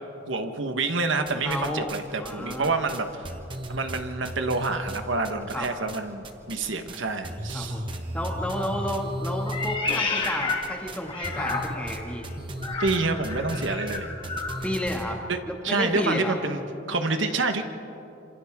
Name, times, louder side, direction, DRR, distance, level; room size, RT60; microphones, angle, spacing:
voice 1, 0.3-3.3 3.7-7.8 12.8-14.1 15.3-15.4 15.6-16.6 16.9-17.6, right 3 dB, 75° right, 7 dB, 1.3 m, -27 dB
sound 1, 1.3-6.0 6.2-7.0 7.2-15.0, right 1 dB, 25° right, 1.2 m, -35 dB
voice 2, 1.4-1.9 2.2-2.7 5.5-5.7 7.5-7.8 8.1-12.2 14.6-15.2 15.4-16.4, left 1 dB, 5° left, 0 dB, 2.0 m, -31 dB
Meow, 9.5-12.0 12.6-14.6, left 3 dB, 25° left, 1.8 m, -31 dB
27.0 x 27.0 x 3.7 m, 2.8 s
head